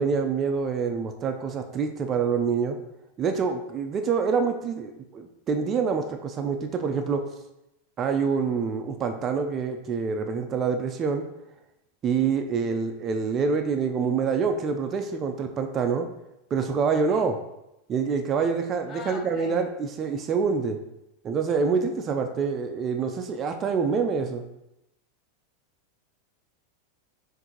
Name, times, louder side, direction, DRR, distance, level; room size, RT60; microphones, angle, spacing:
voice 1, 0.0-2.8 3.2-7.2 8.0-11.2 12.0-16.1 16.5-17.4 17.9-20.8 21.2-24.4, right 5 dB, 35° right, 6 dB, 0.4 m, -26 dB
voice 2, 18.9-19.6, left 4 dB, 35° left, 4 dB, 0.7 m, -41 dB
6.0 x 2.6 x 2.9 m, 0.88 s
hypercardioid pair, 105°, 0 cm